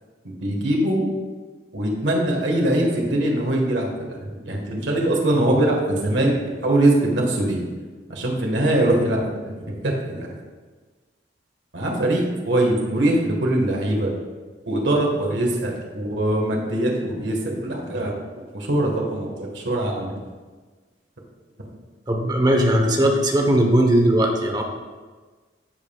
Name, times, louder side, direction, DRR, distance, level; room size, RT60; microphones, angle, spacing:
voice 1, 0.2-1.1 1.7-7.6 8.1-10.3 11.7-14.1 14.7-18.2 18.5-20.3, right 1 dB, 85° right, 0 dB, 1.5 m, -22 dB
voice 2, 22.1-24.6, right 1 dB, 25° right, 2 dB, 0.9 m, -18 dB
14.0 x 5.3 x 2.3 m, 1.4 s
head